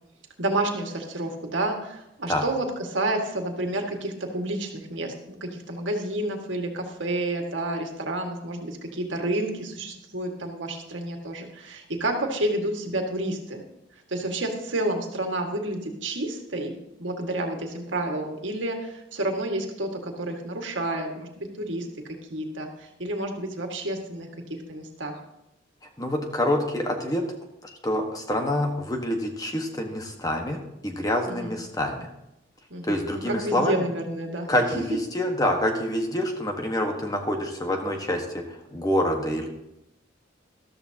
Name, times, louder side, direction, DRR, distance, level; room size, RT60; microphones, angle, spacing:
voice 1, 0.4-13.6 14.1-16.7 17.0-21.9 22.3-25.2 31.3-31.5 32.7-33.0 33.3-34.5, right 1 dB, 80° right, 3 dB, 2.0 m, -30 dB
voice 2, 26.0-27.2 27.6-32.1 32.8-33.9 34.5-39.5, left 1 dB, 20° left, 3 dB, 1.4 m, -26 dB
13.5 x 13.5 x 2.9 m, 0.87 s
head